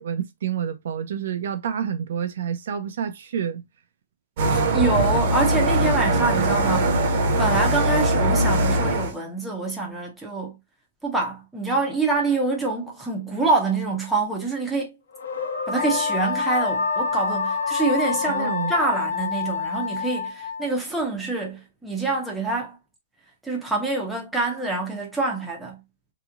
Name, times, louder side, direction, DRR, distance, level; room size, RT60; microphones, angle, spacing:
voice 1, 0.0-3.6 18.3-18.7, right 8 dB, 55° right, 0.5 m, -28 dB
sound 1, 4.4-9.1, right 1 dB, 35° right, 0.8 m, -21 dB
voice 2, 4.5-10.6 11.0-15.0 15.7-22.8 23.4-25.8, right 3 dB, ahead, 0.7 m, -26 dB
sound 2, 15.1-19.2, left 3 dB, 85° left, 1.0 m, -31 dB
Wind instrument woodwind instrument, 15.8-20.8, left 6 dB, 25° left, 1.4 m, -28 dB
3.0 x 2.7 x 2.4 m
hypercardioid pair, 175°, 0 cm